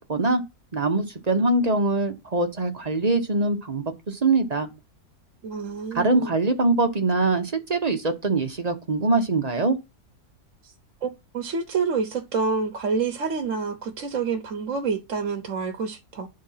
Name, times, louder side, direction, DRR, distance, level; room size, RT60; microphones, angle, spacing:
voice 1, 0.1-0.4 0.7-4.7 5.9-9.8, right 2 dB, 30° right, 0.8 m, -23 dB
voice 2, 5.4-6.3 10.6-10.7 11.0-11.1 11.3-16.3, right 5 dB, 55° right, 1.2 m, -27 dB
11.0 x 3.8 x 5.6 m
omnidirectional pair, 1.8 m